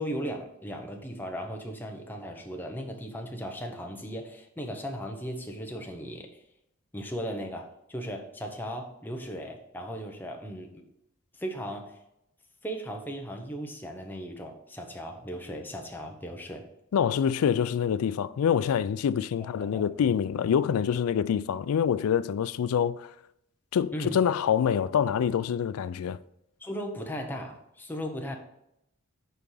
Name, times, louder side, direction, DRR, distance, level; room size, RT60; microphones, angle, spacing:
voice 1, 0.0-6.4 6.9-10.9 11.3-12.0 12.6-16.7 19.4-19.8 23.9-24.2 26.6-28.4, equal, 10° left, 0.8 m, -37 dB
voice 2, 16.9-23.1 23.7-26.2, left 8 dB, 85° left, 0.3 m, -26 dB
6.8 x 4.7 x 3.8 m
head